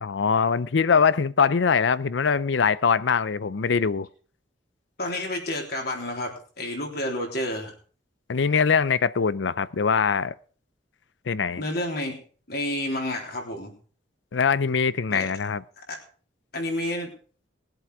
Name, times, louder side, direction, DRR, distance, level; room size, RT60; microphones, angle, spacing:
voice 1, 0.0-4.1 8.3-10.3 11.3-11.6 14.3-15.6, left 6 dB, 70° left, 0.5 m, -22 dB
voice 2, 5.0-7.7 11.6-12.2 12.5-13.7 15.1-15.3 15.8-16.0 16.5-17.1, left 1 dB, 55° left, 3.6 m, -30 dB
20.0 x 7.9 x 4.9 m
head